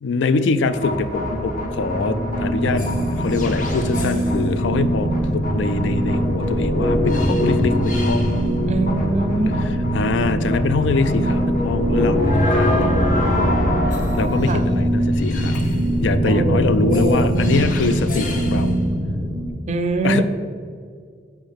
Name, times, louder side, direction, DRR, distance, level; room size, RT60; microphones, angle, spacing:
voice 1, 0.0-2.9 3.2-8.4 9.9-13.6 13.9-15.7 16.0-18.8 20.0-20.2, left 4 dB, 80° left, 12 dB, 0.4 m, -24 dB
sound 1, 0.6-19.5, equal, 45° left, 0.9 m, -21 dB
voice 2, 8.7-9.6 9.9-10.0 14.5-14.6 16.2-17.3 19.7-20.2, right 2 dB, 40° right, 8 dB, 0.4 m, -23 dB
7.3 x 5.3 x 3.6 m, 2.1 s
head